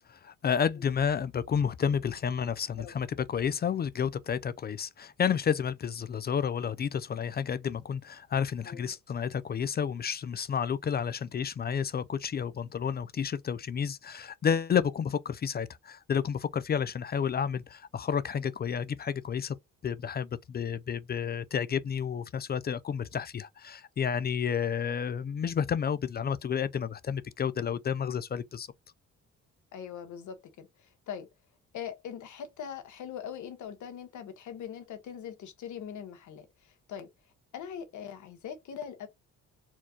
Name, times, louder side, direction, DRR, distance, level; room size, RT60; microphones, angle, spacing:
voice 1, 0.1-19.6 19.8-28.7, left 7 dB, 35° left, 0.4 m, -31 dB
voice 2, 8.6-8.9 29.7-31.3 31.7-37.1 37.5-39.1, left 8 dB, 75° left, 1.3 m, -41 dB
4.4 x 2.3 x 2.7 m
cardioid pair, 90°, 30 cm